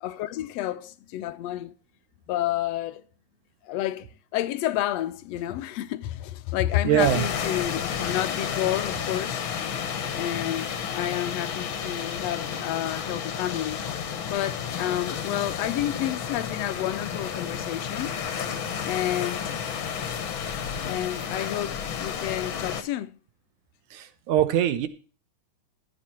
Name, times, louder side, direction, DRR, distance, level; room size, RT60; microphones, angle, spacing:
voice 1, 0.0-1.8 2.3-3.0 3.6-9.4 10.1-13.8 14.3-18.2 18.9-19.5 20.8-23.2, left 13 dB, 70° left, 1.7 m, -30 dB
voice 2, 6.8-7.2 23.9-24.9, right 10 dB, 85° right, 2.5 m, -22 dB
sound 1, 7.0-22.8, left 7 dB, 50° left, 1.6 m, -31 dB
15.0 x 8.4 x 4.4 m
omnidirectional pair, 3.4 m